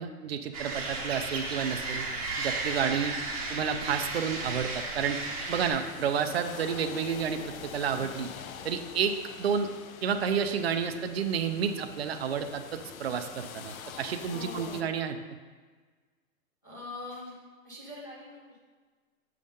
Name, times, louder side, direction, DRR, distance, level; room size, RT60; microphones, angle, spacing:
voice 1, 0.0-2.1 2.4-3.1 3.5-5.2 5.5-8.3 8.6-9.7 10.0-12.6 13.0-15.2, right 7 dB, 45° right, 7 dB, 0.4 m, -30 dB
sound 1, 0.5-5.7, right 3 dB, 25° right, 0.8 m, -34 dB
sound 2, 0.8-14.8, left 8 dB, 70° left, 0.6 m, -46 dB
voice 2, 14.3-14.8 16.6-17.4 17.6-18.4, left 2 dB, 15° left, -8 dB, 0.5 m, -42 dB
7.5 x 3.6 x 5.3 m, 1.4 s
hypercardioid pair, 170°, 44 cm